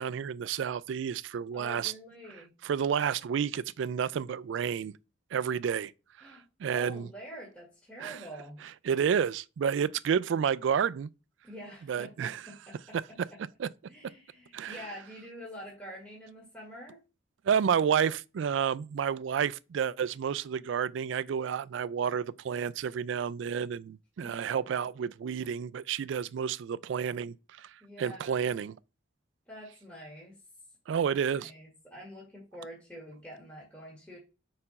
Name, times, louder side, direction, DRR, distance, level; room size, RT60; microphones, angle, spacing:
voice 1, 0.0-1.9 2.6-4.9 5.3-5.9 6.2-7.1 8.0-8.2 8.8-11.1 11.9-12.4 13.6-13.7 14.5-14.8 17.4-27.7 28.0-28.7 30.9-31.5, right 7 dB, 75° right, 0.3 m, -30 dB
voice 2, 1.5-2.5 6.2-8.6 11.4-13.2 13.9-17.0 24.2-24.5 27.8-28.4 29.5-30.4 31.1-34.2, equal, 10° left, 2.0 m, -46 dB
4.4 x 4.2 x 5.3 m
head